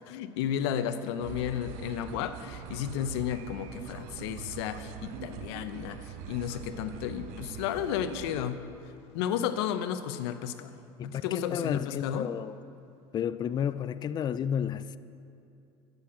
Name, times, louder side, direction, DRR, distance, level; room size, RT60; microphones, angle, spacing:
voice 1, 0.1-8.6 9.1-10.7 11.0-12.3, left 9 dB, 85° left, 0.8 m, -33 dB
sound 1, 1.2-8.4, right 8 dB, 75° right, 0.9 m, -43 dB
voice 2, 11.0-12.6 13.1-15.0, left 8 dB, 30° left, 0.4 m, -32 dB
12.5 x 8.2 x 8.6 m
supercardioid pair, 115°, 13 cm